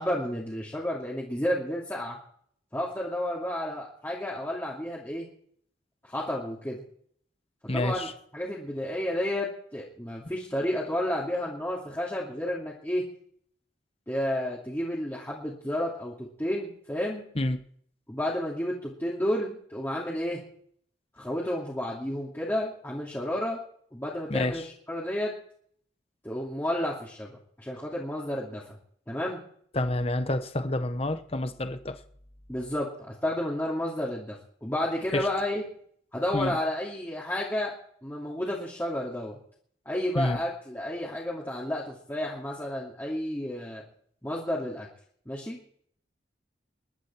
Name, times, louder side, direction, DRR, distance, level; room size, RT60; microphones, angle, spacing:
voice 1, 0.0-2.2 2.7-5.3 6.0-6.8 7.7-8.1 8.3-13.0 14.1-17.2 18.1-20.4 21.2-23.6 23.9-25.3 26.2-28.7 29.1-29.4 32.5-34.4 34.6-35.6 36.1-37.7 38.0-39.4 39.9-43.8 44.2-44.9 45.3-45.6, left 1 dB, 10° left, -5 dB, 2.6 m, -31 dB
voice 2, 7.7-8.1 17.4-17.6 24.3-24.7 29.7-32.0 35.1-35.3 36.3-36.6 40.1-40.4, left 1 dB, 35° left, 10 dB, 1.0 m, -28 dB
21.5 x 11.5 x 4.6 m, 0.62 s
head